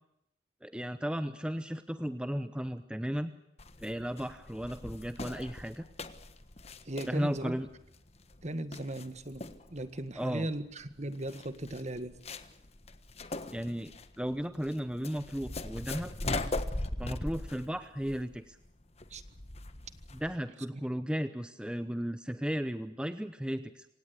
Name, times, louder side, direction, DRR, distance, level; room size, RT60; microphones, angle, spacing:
voice 1, 0.6-3.3 3.8-5.8 7.1-7.7 10.2-10.5 13.5-16.1 17.0-18.6 20.1-23.9, equal, 5° right, 11 dB, 0.8 m, -35 dB
sound 1, 3.6-20.4, left 2 dB, 35° left, 1.4 m, -40 dB
voice 2, 6.9-7.5 8.4-9.4 9.7-12.2 19.1-19.2, right 1 dB, 40° right, 11 dB, 1.7 m, -37 dB
27.0 x 17.5 x 8.2 m, 0.83 s
head